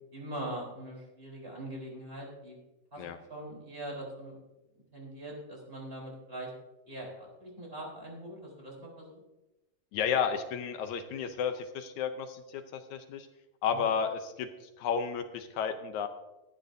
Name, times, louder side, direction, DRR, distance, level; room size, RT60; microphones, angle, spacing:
voice 1, 0.1-2.5 2.9-3.0 3.3-4.4 4.9-6.5 6.9-9.2 13.7-13.8, right 1 dB, 15° right, -2 dB, 3.8 m, -42 dB
voice 2, 9.9-13.3 13.6-16.1, left 7 dB, 75° left, 8 dB, 1.8 m, -32 dB
16.5 x 12.5 x 2.7 m, 1.0 s
omnidirectional pair, 3.9 m